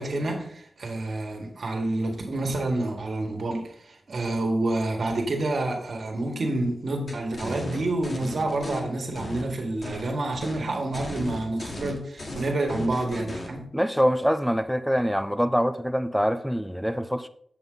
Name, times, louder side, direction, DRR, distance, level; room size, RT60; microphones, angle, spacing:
voice 1, 0.0-13.6, right 2 dB, 55° right, 1.6 m, -28 dB
sound 1, 7.1-8.8 9.1-10.1 10.4-10.6 10.9-13.5, left 1 dB, 45° left, 1.5 m, -36 dB
voice 2, 13.7-17.3, equal, ahead, 0.4 m, -24 dB
7.9 x 7.1 x 3.8 m
wide cardioid pair, 180°, 0 cm